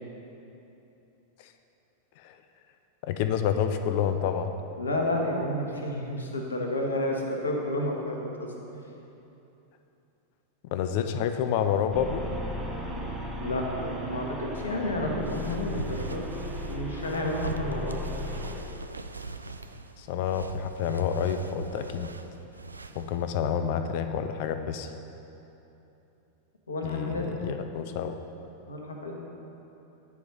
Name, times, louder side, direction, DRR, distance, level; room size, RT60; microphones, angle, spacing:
voice 1, 3.0-4.5 10.7-12.3 20.0-22.1 23.0-24.9 26.8-28.2, left 8 dB, 50° left, 8 dB, 0.4 m, -28 dB
voice 2, 4.8-8.5 13.4-16.3 16.6-18.0 26.7-27.3 27.6-27.7 28.7-29.1, left 1 dB, 75° left, 1 dB, 1.1 m, -31 dB
sound 1, 11.9-18.6, equal, 10° right, 1.2 m, -36 dB
sound 2, 15.2-23.3, right 3 dB, 80° right, 0.3 m, -42 dB
9.2 x 4.8 x 5.6 m, 2.9 s
figure-of-eight pair, 90°, 0 cm